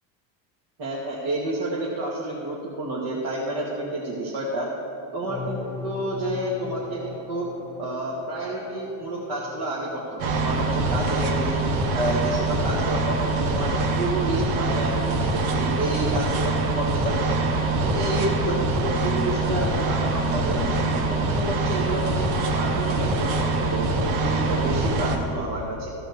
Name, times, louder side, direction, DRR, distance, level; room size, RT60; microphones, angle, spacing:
voice 1, 0.8-4.7 5.1-7.4 7.8-11.6 11.9-17.4 17.8-20.6 20.9-25.9, right 1 dB, 50° right, -5 dB, 2.3 m, -29 dB
sound 1, 5.3-11.8 12.4-12.7 18.7-21.0, left 5 dB, 5° left, 0.6 m, -39 dB
sound 2, 10.2-25.2, right 3 dB, 75° right, 1.7 m, -24 dB
14.5 x 6.0 x 6.7 m, 2.8 s
supercardioid pair, 105°, 49 cm